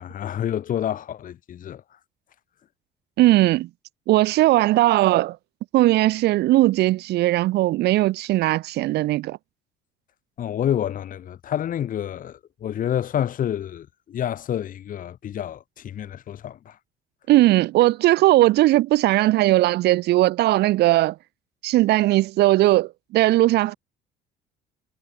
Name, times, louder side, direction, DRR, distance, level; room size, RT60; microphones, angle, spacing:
voice 1, 0.0-1.8 10.4-16.8, left 10 dB, 55° left, 2.8 m, -28 dB
voice 2, 3.2-3.7 4.1-5.4 5.7-9.4 17.3-21.1 21.6-23.7, right 17 dB, 80° right, 1.6 m, -18 dB
cardioid pair, 110°, 17 cm